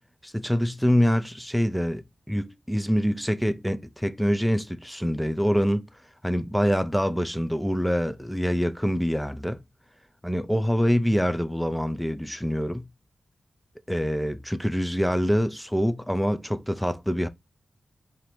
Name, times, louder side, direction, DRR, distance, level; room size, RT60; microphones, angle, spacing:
voice 1, 0.2-5.8 6.2-9.6 10.2-12.9 13.9-17.3, equal, ahead, 0.3 m, -25 dB
4.2 x 2.5 x 3.2 m
wide cardioid pair, 135°, 0 cm